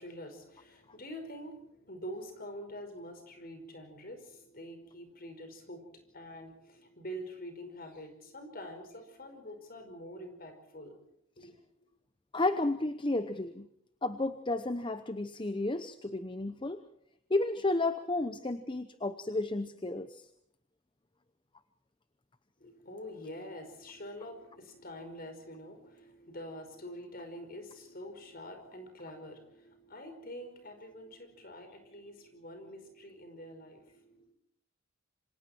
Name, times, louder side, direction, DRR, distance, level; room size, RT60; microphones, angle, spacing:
voice 1, 0.0-11.0 11.4-11.6 22.6-34.3, equal, 45° left, 6 dB, 5.1 m, -46 dB
voice 2, 12.3-13.7 14.0-16.8 17.3-20.2, left 2 dB, 25° left, 11 dB, 0.8 m, -32 dB
27.5 x 26.0 x 4.5 m, 0.71 s
head